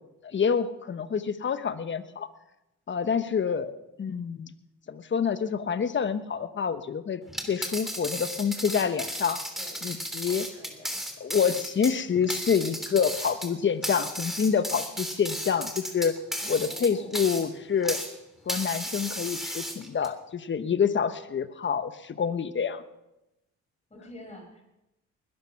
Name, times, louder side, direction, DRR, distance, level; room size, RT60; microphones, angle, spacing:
voice 1, 0.2-2.3 2.9-3.7 4.0-4.5 4.9-7.2 7.5-9.4 9.8-10.5 11.2-16.1 16.5-18.0 18.5-22.8, left 6 dB, 40° left, 12 dB, 1.1 m, -27 dB
sound 1, 7.3-18.1 18.5-20.1, equal, ahead, 3.1 m, -34 dB
voice 2, 9.5-10.0 10.6-10.9 16.4-17.2 23.9-24.6, left 1 dB, 20° left, 2 dB, 6.1 m, -47 dB
20.5 x 12.0 x 5.9 m, 0.92 s
cardioid pair, 90°, 30 cm